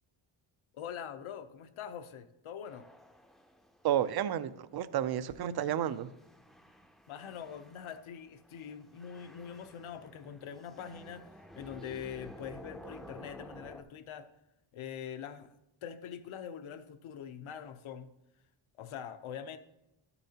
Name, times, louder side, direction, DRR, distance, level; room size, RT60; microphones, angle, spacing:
voice 1, 0.7-2.9 7.1-14.3 14.7-15.5 15.8-18.1 18.8-19.6, left 8 dB, 80° left, 9 dB, 0.8 m, -43 dB
sound 1, 2.6-13.8, equal, ahead, 0.5 m, -53 dB
voice 2, 3.8-6.1, right 10 dB, 55° right, 15 dB, 0.5 m, -31 dB
12.5 x 6.9 x 2.9 m, 0.88 s
wide cardioid pair, 125°, 48 cm